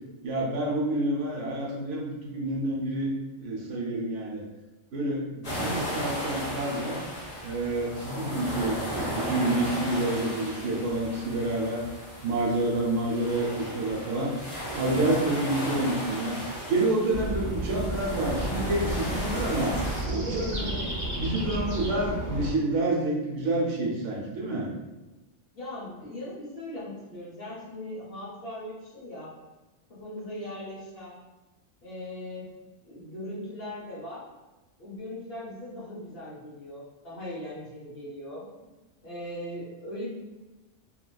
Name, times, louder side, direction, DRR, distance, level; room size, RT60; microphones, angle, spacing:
voice 1, 0.2-3.1 3.4-4.4 4.9-7.0 7.4-11.8 12.2-14.3 14.7-16.4 16.7-19.8 20.1-20.7 21.2-24.7, right 2 dB, 70° right, -3 dB, 1.0 m, -28 dB
sound 1, 5.4-20.0, equal, 35° left, 0.8 m, -35 dB
sound 2, 17.1-22.5, right 1 dB, 40° right, 0.8 m, -32 dB
voice 2, 20.2-20.9 25.5-29.3 29.9-31.2 31.8-32.4 32.8-34.2 34.8-38.4 39.0-40.0, left 1 dB, 50° left, -7 dB, 1.1 m, -39 dB
2.7 x 2.3 x 2.2 m, 1.1 s
omnidirectional pair, 1.3 m